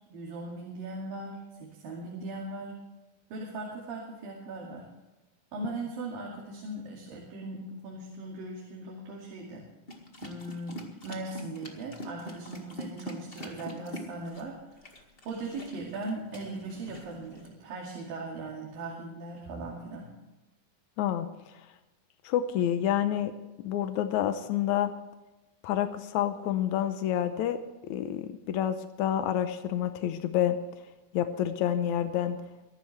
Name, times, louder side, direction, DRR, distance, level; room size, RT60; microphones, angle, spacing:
voice 1, 0.1-2.7 3.3-4.9 5.5-9.7 10.2-15.0 15.3-20.1, right 2 dB, 70° right, -2 dB, 4.0 m, -39 dB
sound 1, 9.9-17.5, left 1 dB, 30° left, 1.1 m, -44 dB
voice 2, 21.0-21.6 22.2-23.3 23.6-24.9 25.6-27.6 27.8-30.6 31.1-32.4, left 10 dB, 80° left, 9 dB, 1.7 m, -28 dB
23.5 x 12.0 x 3.3 m, 1.1 s
omnidirectional pair, 4.3 m